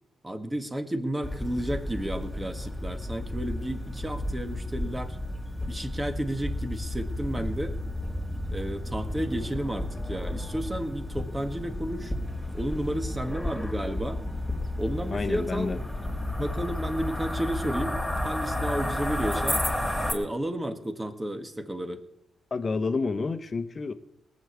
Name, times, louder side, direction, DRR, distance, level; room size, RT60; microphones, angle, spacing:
voice 1, 0.2-5.2 5.7-7.8 8.5-12.1 12.5-14.2 14.8-15.8 16.4-18.0 18.2-19.6 20.1-22.0, right 1 dB, 20° right, 7 dB, 1.9 m, -32 dB
sound 1, 1.2-20.1, left 1 dB, 10° left, 3.5 m, -32 dB
voice 2, 15.1-15.8 22.5-23.9, left 4 dB, 45° left, 11 dB, 1.1 m, -29 dB
18.5 x 6.4 x 8.4 m, 0.84 s
supercardioid pair, 55°, 0 cm